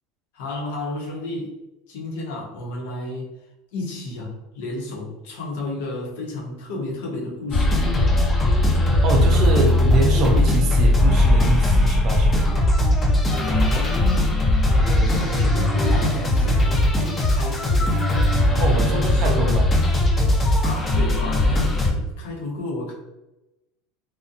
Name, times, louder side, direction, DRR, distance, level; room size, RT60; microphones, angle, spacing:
voice 1, 0.3-1.5 1.9-3.3 3.7-7.9 13.3-17.9 18.4-19.6 20.6-22.9, left 2 dB, 85° left, -1 dB, 0.8 m, -32 dB
sound 1, 7.5-21.9, left 1 dB, 25° left, 0.6 m, -19 dB
voice 2, 9.0-12.5 18.6-19.7, right 3 dB, 45° right, 3 dB, 0.4 m, -24 dB
2.5 x 2.1 x 2.5 m, 0.95 s
supercardioid pair, 140°, 0 cm